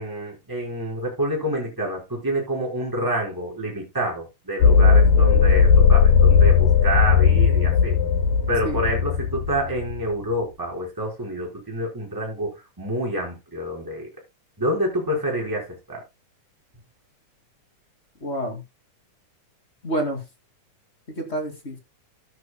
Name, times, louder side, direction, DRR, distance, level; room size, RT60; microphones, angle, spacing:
voice 1, 0.0-8.0 8.5-14.1 14.6-16.0, right 1 dB, 5° right, 4.3 m, -27 dB
sound 1, 4.6-10.0, left 6 dB, 85° left, 3.7 m, -17 dB
voice 2, 18.2-18.6 19.8-20.2 21.1-21.8, right 1 dB, 20° left, 2.1 m, -28 dB
14.0 x 9.3 x 2.2 m
omnidirectional pair, 3.7 m